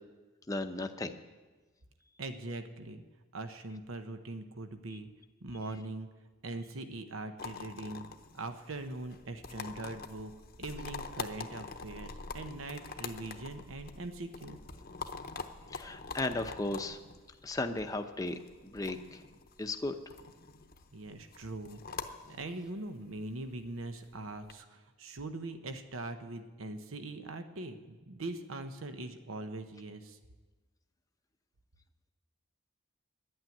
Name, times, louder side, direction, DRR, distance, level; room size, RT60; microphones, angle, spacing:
voice 1, 0.5-1.2 15.7-17.0 17.4-19.2 19.6-19.9, left 2 dB, 15° left, 6 dB, 0.6 m, -35 dB
voice 2, 2.2-3.0 3.3-5.1 5.4-6.1 6.4-8.1 8.3-10.3 10.6-14.6 20.9-21.8 22.3-30.2, right 2 dB, 85° right, 8 dB, 1.0 m, -41 dB
sound 1, 7.4-24.5, left 4 dB, 45° left, 0.7 m, -45 dB
11.0 x 8.9 x 9.2 m, 1.3 s
head